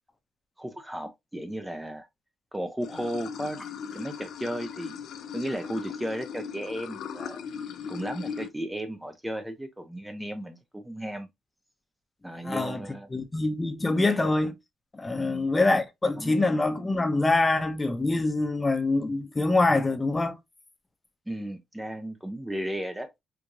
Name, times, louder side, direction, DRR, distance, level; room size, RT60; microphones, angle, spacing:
voice 1, 0.6-2.1 2.5-3.6 3.9-5.0 5.3-7.4 7.9-11.3 12.2-13.1 13.9-14.0 15.2-15.5 16.2-16.5 21.3-23.1, right 1 dB, 10° right, 0.5 m, -35 dB
Water / Sink (filling or washing), 2.8-8.5, left 7 dB, 75° left, 0.4 m, -38 dB
voice 2, 12.4-12.8 13.1-14.5 14.9-20.4, left 2 dB, 20° left, 0.8 m, -25 dB
4.6 x 2.5 x 2.5 m
cardioid pair, 90°, 0 cm